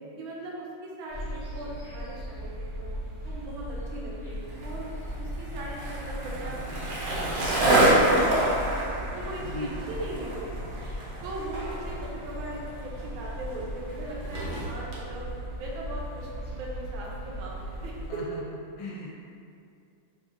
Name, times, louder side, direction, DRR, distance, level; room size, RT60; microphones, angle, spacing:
voice 1, 0.2-2.9 3.2-4.9 5.2-8.8 9.1-10.8 11.2-15.2 15.6-16.3 16.5-18.2, right 1 dB, 85° right, -4 dB, 1.5 m, -39 dB
sound 1, 1.1-18.1, equal, 10° right, 0.6 m, -38 dB
Skateboard, 4.5-15.0, right 1 dB, 65° right, 0.9 m, -28 dB
voice 2, 9.4-9.8 18.1-18.4 18.8-19.1, left 1 dB, 75° left, -4 dB, 1.3 m, -36 dB
4.0 x 2.4 x 2.5 m, 2.4 s
omnidirectional pair, 2.2 m